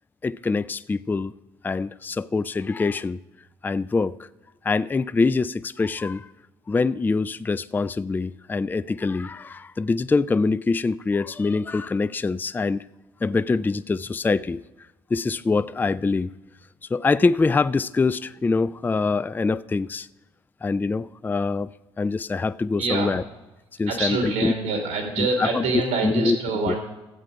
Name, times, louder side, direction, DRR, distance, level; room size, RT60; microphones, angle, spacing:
voice 1, 0.2-1.3 1.6-3.2 3.6-4.2 4.6-6.3 6.7-12.8 13.2-14.6 15.1-16.3 16.9-20.1 20.6-21.7 22.0-23.2 23.8-24.5 25.2-26.4 26.7-26.8, left 4 dB, 15° left, 0.3 m, -24 dB
voice 2, 22.8-23.1 23.9-26.8, right 3 dB, 85° right, 2.3 m, -25 dB
13.5 x 7.8 x 4.9 m
hypercardioid pair, 60°, 12 cm